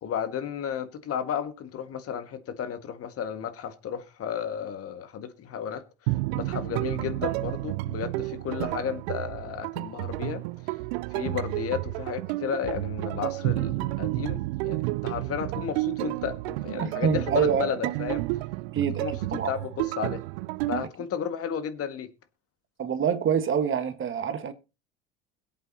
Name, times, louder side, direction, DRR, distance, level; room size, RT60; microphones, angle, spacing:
voice 1, 0.0-5.8 6.3-10.4 11.1-18.2 19.0-20.2 20.7-22.1, left 8 dB, 45° left, 1.8 m, -33 dB
sound 1, 6.1-20.8, right 21 dB, 70° right, 0.5 m, -31 dB
voice 2, 16.7-17.6 18.7-19.1 19.3-19.5 22.8-24.5, right 7 dB, 40° right, 1.5 m, -26 dB
21.5 x 8.4 x 2.9 m
hypercardioid pair, 80°, 33 cm